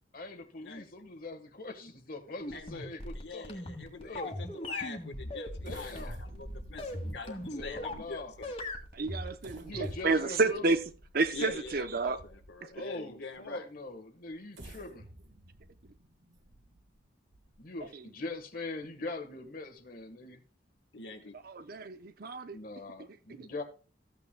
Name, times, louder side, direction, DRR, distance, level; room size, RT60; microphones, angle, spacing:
voice 1, 0.1-3.5 3.9-4.3 5.6-6.2 7.5-8.3 9.6-10.7 12.7-15.1 17.6-20.4 22.5-23.6, left 2 dB, 50° left, 1.4 m, -42 dB
sound 1, 2.4-8.1 8.4-10.2, left 1 dB, 30° left, 1.9 m, -39 dB
voice 2, 2.5-8.6 11.3-13.7 20.9-21.4, left 3 dB, 65° left, 1.3 m, -44 dB
sound 2, 5.6-12.8 13.3-13.4 14.3-17.9 18.3-18.4 18.8-19.1, right 1 dB, 80° right, 1.5 m, -51 dB
voice 3, 8.9-10.8 11.1-12.2 21.5-22.6 23.4-23.5, right 3 dB, 50° right, 0.7 m, -30 dB
14.0 x 8.8 x 2.2 m
head